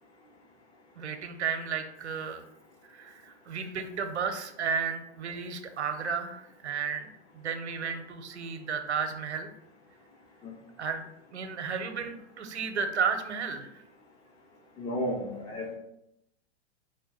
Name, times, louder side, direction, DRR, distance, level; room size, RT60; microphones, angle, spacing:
voice 1, 1.0-2.4 2.8-7.1 7.3-9.5 10.8-11.0 11.3-13.7, right 6 dB, 75° right, 7 dB, 0.7 m, -33 dB
voice 2, 14.8-15.7, equal, 10° left, -1 dB, 0.3 m, -33 dB
4.6 x 2.2 x 4.4 m, 0.79 s
figure-of-eight pair, 105°, 34 cm